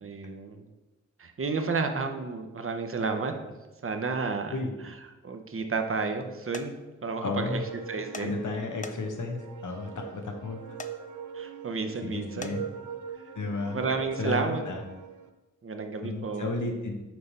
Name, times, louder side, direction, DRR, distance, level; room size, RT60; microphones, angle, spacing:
voice 1, 0.0-0.6 1.2-3.3 3.8-4.5 5.2-6.7 7.0-7.6 7.9-8.4 11.3-12.6 13.7-14.7 15.6-16.5, right 4 dB, 45° right, 6 dB, 0.7 m, -31 dB
sound 1, 6.5-6.7 8.1-8.3 8.8-9.3 10.8-10.9 12.4-12.6, left 4 dB, 25° left, 0.4 m, -40 dB
sound 2, 7.1-15.3, right 7 dB, 80° right, 0.6 m, -42 dB
voice 2, 7.2-7.6 8.2-10.8 11.4-11.5 12.0-12.6 13.3-13.8 14.2-14.8 16.0-17.0, left 3 dB, 85° left, 3 dB, 1.0 m, -33 dB
6.0 x 3.3 x 5.4 m, 1.1 s
wide cardioid pair, 90°, 30 cm